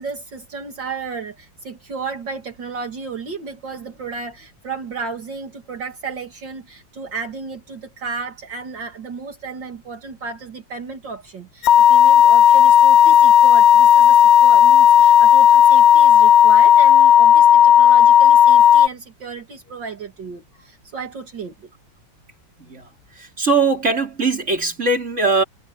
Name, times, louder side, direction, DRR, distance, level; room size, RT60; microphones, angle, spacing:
voice 1, 0.0-21.7, right 4 dB, 65° right, 3.0 m, -33 dB
sound 1, 11.6-18.9, left 9 dB, 75° left, 0.6 m, -11 dB
voice 2, 23.2-25.4, right 3 dB, 35° right, 4.7 m, -20 dB
omnidirectional pair, 2.1 m